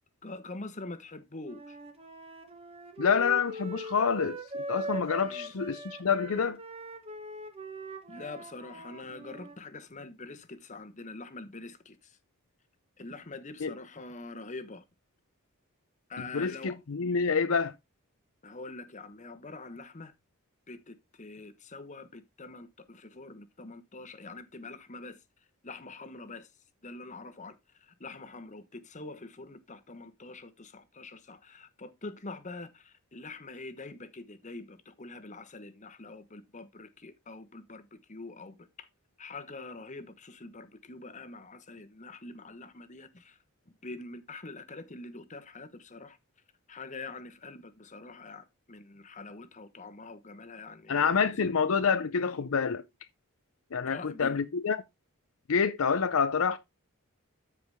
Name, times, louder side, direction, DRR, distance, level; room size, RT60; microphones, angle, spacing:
voice 1, 0.2-1.8 5.2-5.5 8.1-12.2 13.0-14.8 16.1-16.8 18.4-20.1 20.7-25.2 25.6-26.5 26.8-38.9 39.2-43.4 43.8-46.2 46.7-51.2 53.9-54.4, left 3 dB, 35° left, 1.1 m, -45 dB
Wind instrument woodwind instrument, 1.4-9.6, right 1 dB, 25° right, 1.5 m, -41 dB
voice 2, 3.0-6.6 13.6-13.7 16.3-17.7 50.9-52.8 53.7-54.8 55.5-56.6, left 6 dB, 65° left, 0.6 m, -27 dB
13.5 x 4.9 x 3.5 m
head